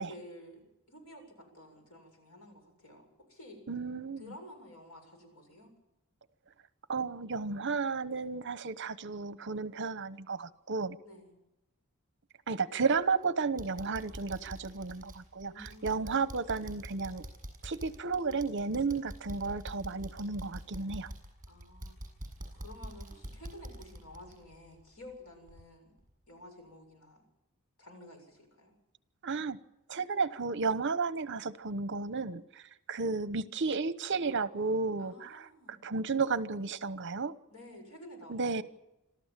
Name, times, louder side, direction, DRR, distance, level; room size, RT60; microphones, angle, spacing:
voice 1, 0.0-3.6 4.2-5.7 11.0-11.4 15.4-16.1 21.5-21.9 22.5-25.9 26.3-27.2 27.8-28.7 35.0-35.8 37.5-38.6, left 1 dB, 85° left, 7.3 m, -51 dB
voice 2, 3.7-4.2 6.9-11.0 12.5-17.3 17.6-21.1 29.2-29.6 29.9-32.4 32.9-35.4 35.8-37.3 38.3-38.6, right 4 dB, 60° right, 1.0 m, -33 dB
sound 1, 12.9-13.2 13.6-25.2 25.5-25.6 26.1-26.2, right 1 dB, 40° right, 6.9 m, -46 dB
26.5 x 14.0 x 7.5 m
head